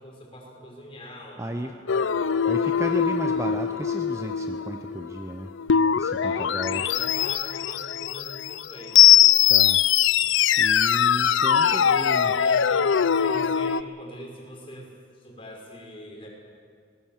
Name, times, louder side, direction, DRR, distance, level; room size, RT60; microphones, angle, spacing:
voice 1, 0.0-2.7 6.2-9.2 11.3-16.3, equal, 30° left, -2 dB, 5.1 m, -42 dB
voice 2, 1.4-1.8 2.5-5.5 6.0-7.0 9.5-9.8 10.6-12.3, right 1 dB, 15° right, 5 dB, 0.7 m, -34 dB
sound 1, 1.9-13.8, left 9 dB, 85° left, 0.5 m, -21 dB
22.5 x 18.5 x 7.3 m, 2.2 s
head